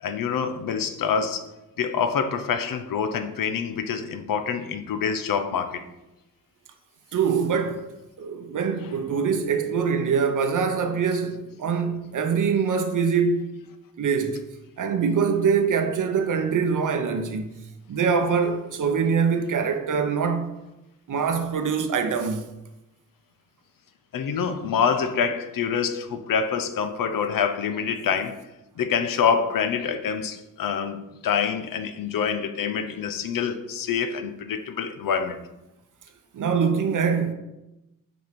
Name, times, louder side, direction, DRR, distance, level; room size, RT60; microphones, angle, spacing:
voice 1, 0.0-1.5 1.8-5.9 24.1-28.4 28.8-35.5, left 6 dB, 85° left, 0.7 m, -26 dB
voice 2, 7.1-7.9 8.2-13.5 14.0-14.4 14.8-17.5 17.9-20.5 21.1-22.4 36.3-37.3, right 6 dB, 70° right, 0.8 m, -24 dB
6.2 x 4.4 x 5.1 m
cardioid pair, 85°, 33 cm